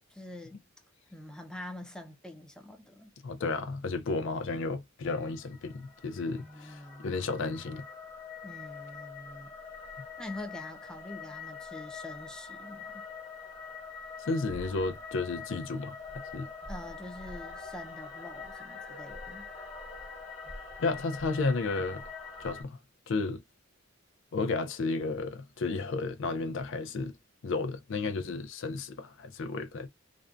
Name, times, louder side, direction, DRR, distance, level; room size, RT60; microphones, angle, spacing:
voice 1, 0.1-0.7 1.1-3.1 6.3-7.1 8.4-9.5 10.2-13.0 16.7-19.5, left 1 dB, 5° left, 0.4 m, -45 dB
voice 2, 3.2-6.4 7.0-7.8 14.2-16.5 20.8-22.0 22.4-22.8 23.1-23.4 24.3-27.1 27.4-29.9, left 3 dB, 70° left, 0.5 m, -32 dB
sound 1, 5.1-22.6, left 4 dB, 35° left, 1.1 m, -44 dB
2.5 x 2.1 x 2.3 m
head